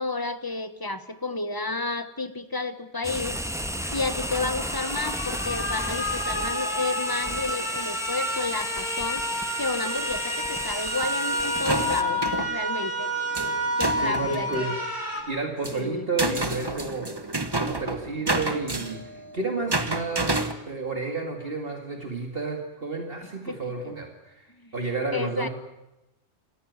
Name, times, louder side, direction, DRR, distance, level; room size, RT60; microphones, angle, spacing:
voice 1, 0.0-3.4 3.9-13.1 13.8-14.7 15.7-16.1 23.5-23.7 24.6-24.7 25.1-25.5, left 3 dB, 20° left, 11 dB, 1.2 m, -31 dB
sound 1, 3.0-12.0, equal, 5° right, 1.5 m, -33 dB
sound 2, 3.6-15.2, equal, 60° left, 4.5 m, -30 dB
sound 3, 11.5-12.5 13.3-14.6 15.4-20.5, right 2 dB, 20° right, 1.2 m, -30 dB
voice 2, 14.0-14.7 15.3-17.1 17.6-20.4 20.7-24.5 24.7-25.5, right 3 dB, 50° right, 3 dB, 2.4 m, -31 dB
27.5 x 14.5 x 9.4 m, 0.94 s
omnidirectional pair, 1.2 m